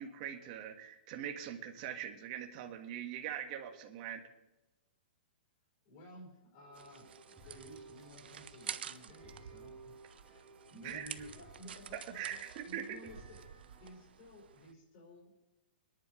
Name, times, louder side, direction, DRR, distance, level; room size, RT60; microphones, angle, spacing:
voice 1, 0.0-4.2 10.8-11.1 11.9-12.8, right 10 dB, 40° right, 3 dB, 1.6 m, -42 dB
voice 2, 5.9-9.9 10.2-10.4 10.7-13.4 13.8-15.4, equal, 35° left, -2 dB, 5.5 m, -54 dB
sound 1, 6.6-14.0, right 3 dB, 10° right, 3.2 m, -57 dB
sound 2, 6.7-14.7, right 8 dB, 80° right, 0.8 m, -50 dB
23.5 x 10.5 x 3.3 m, 1.0 s
hypercardioid pair, 160°, 5 cm